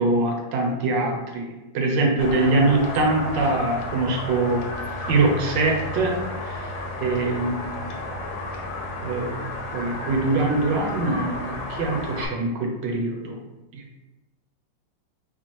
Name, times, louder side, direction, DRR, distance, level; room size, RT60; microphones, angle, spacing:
voice 1, 0.0-4.6 5.1-6.6 7.0-7.8 9.0-13.4 13.7-14.0, right 2 dB, 75° right, 2 dB, 1.3 m, -23 dB
sound 1, 2.2-12.2, left 2 dB, 65° left, 1.1 m, -32 dB
4.2 x 2.3 x 4.5 m, 1.0 s
omnidirectional pair, 2.1 m